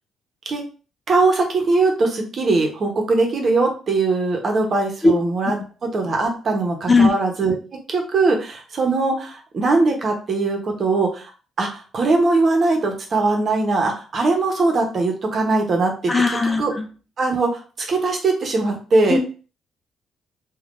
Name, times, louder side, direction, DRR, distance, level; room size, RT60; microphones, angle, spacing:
voice 1, 1.1-7.6 7.9-11.2 11.6-16.1 16.4-16.7 17.2-19.2, right 3 dB, 50° right, 2 dB, 0.9 m, -20 dB
voice 2, 16.1-16.9 19.1-19.2, left 3 dB, 20° left, 5 dB, 0.5 m, -17 dB
3.4 x 2.4 x 2.5 m, 0.36 s
cardioid pair, 90°, 0 cm